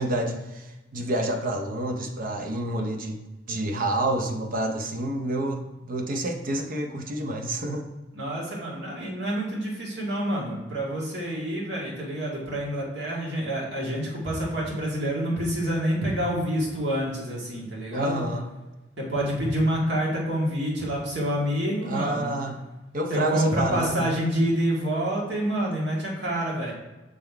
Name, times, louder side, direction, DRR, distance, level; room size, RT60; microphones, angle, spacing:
voice 1, 0.0-3.2 3.5-7.9 17.9-18.5 21.9-22.7 22.9-24.1, right 1 dB, 50° right, 5 dB, 0.7 m, -28 dB
voice 2, 8.1-18.2 19.0-22.4 23.1-26.7, right 1 dB, 65° right, -4 dB, 1.8 m, -27 dB
6.6 x 3.8 x 4.5 m, 1.1 s
head